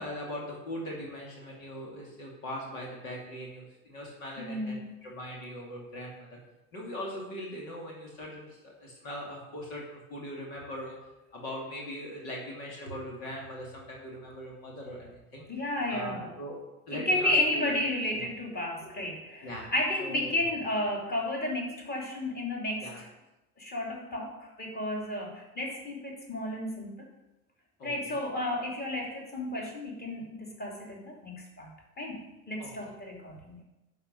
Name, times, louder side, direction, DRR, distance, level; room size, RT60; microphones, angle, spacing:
voice 1, 0.0-6.4 6.7-11.0 11.3-15.4 15.9-16.6 16.9-17.7 18.1-18.2 19.0-19.1 19.4-19.7 20.0-20.3 22.8-23.0 27.8-27.9 32.6-32.7, equal, 65° left, -2 dB, 2.7 m, -40 dB
voice 2, 4.4-4.9 15.5-16.2 16.9-23.1 23.6-26.9 27.8-33.6, left 1 dB, 20° left, -2 dB, 3.1 m, -32 dB
11.0 x 5.3 x 6.6 m, 0.99 s
figure-of-eight pair, 65°, 43 cm